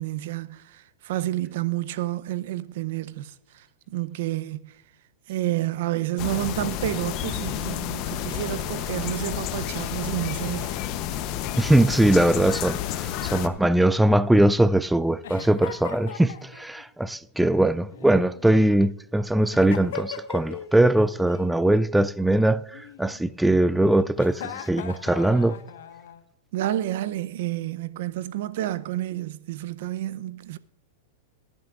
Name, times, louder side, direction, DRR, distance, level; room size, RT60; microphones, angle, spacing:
voice 1, 0.0-4.8 5.3-10.8 26.5-30.6, right 14 dB, 60° right, 0.6 m, -30 dB
sound 1, 6.2-13.5, left 11 dB, 40° left, 0.8 m, -30 dB
voice 2, 11.6-25.6, right 1 dB, 5° right, 0.3 m, -21 dB
Giggle, 12.7-14.5 15.2-16.8 17.9-18.8 19.5-20.7 21.0-21.5 22.7-23.5 24.1-26.2, left 8 dB, 75° left, 1.3 m, -40 dB
19.0 x 11.0 x 2.5 m
hypercardioid pair, 140°, 0 cm